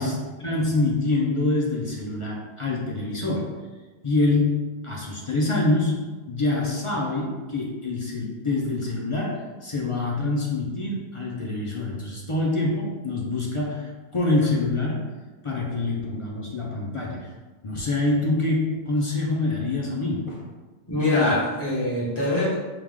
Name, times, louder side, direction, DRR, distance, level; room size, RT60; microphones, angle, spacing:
voice 1, 0.0-3.6 4.0-15.1 15.4-17.3 17.6-20.5, left 2 dB, 40° left, -3 dB, 0.5 m, -26 dB
voice 2, 20.9-22.5, left 2 dB, 20° left, -8 dB, 1.2 m, -23 dB
4.6 x 2.3 x 3.6 m, 1.3 s
omnidirectional pair, 1.2 m